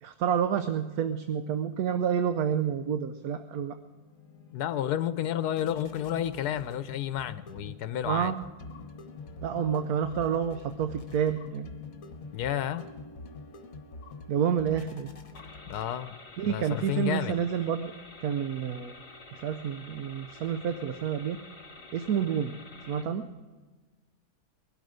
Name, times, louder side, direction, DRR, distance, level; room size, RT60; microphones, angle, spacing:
voice 1, 0.0-3.8 8.1-8.3 9.4-11.7 14.3-15.1 16.4-17.9 18.2-18.9 19.3-21.4 21.9-22.5 22.9-23.3, right 8 dB, 75° right, 9 dB, 1.2 m, -29 dB
sound 1, 3.6-16.3, left 3 dB, 65° left, 1.6 m, -46 dB
voice 2, 4.5-8.3 12.3-12.8 15.7-16.1 16.4-17.4, left 11 dB, 90° left, 13 dB, 1.2 m, -31 dB
sound 2, 15.3-23.0, left 3 dB, 45° left, 3.0 m, -49 dB
21.5 x 12.0 x 5.0 m, 1.3 s
omnidirectional pair, 1.6 m